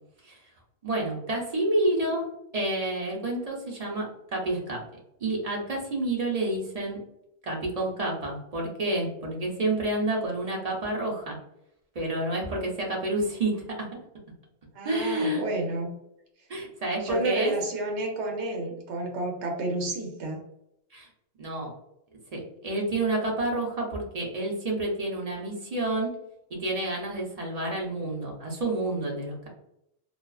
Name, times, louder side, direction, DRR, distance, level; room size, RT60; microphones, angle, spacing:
voice 1, 0.8-2.2 2.5-4.1 4.3-4.8 5.2-7.0 7.4-11.4 11.9-14.0 14.8-15.4 16.5-17.5 20.9-21.1 21.4-21.7 22.3-26.1 26.5-29.5, right 2 dB, 45° right, -1 dB, 0.6 m, -29 dB
voice 2, 14.7-15.9 17.0-20.4, right 2 dB, 80° right, 1 dB, 0.9 m, -30 dB
2.4 x 2.3 x 2.2 m, 0.79 s
omnidirectional pair, 1.1 m